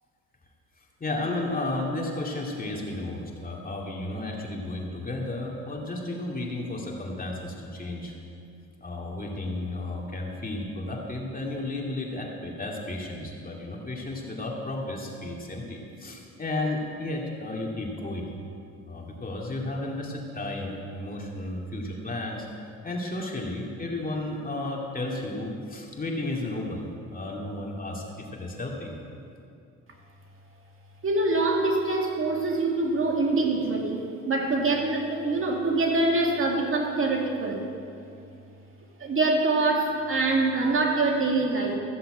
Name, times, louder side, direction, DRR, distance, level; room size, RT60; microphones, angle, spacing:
voice 1, 1.0-8.1 8.8-18.3 18.8-22.5 22.8-28.9, left 2 dB, 30° left, -1 dB, 2.5 m, -33 dB
voice 2, 31.0-37.7 39.0-41.8, right 2 dB, 45° right, 1 dB, 2.2 m, -25 dB
15.0 x 7.6 x 7.8 m, 2.5 s
cardioid pair, 90°, 30 cm